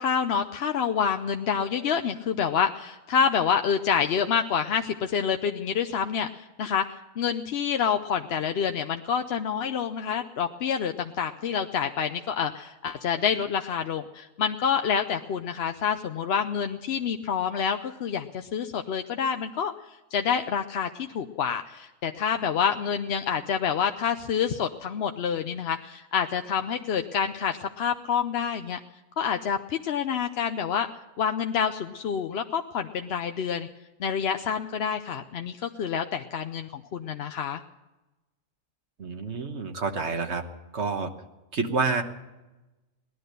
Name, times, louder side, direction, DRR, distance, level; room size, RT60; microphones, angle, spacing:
voice 1, 0.0-28.8 29.2-30.9 31.2-33.7 34.0-37.6, left 7 dB, 60° left, 6 dB, 0.8 m, -27 dB
voice 2, 39.0-40.4 40.7-41.1 41.5-42.0, right 4 dB, 60° right, 6 dB, 1.5 m, -28 dB
18.0 x 11.5 x 6.6 m, 1.1 s
omnidirectional pair, 1.4 m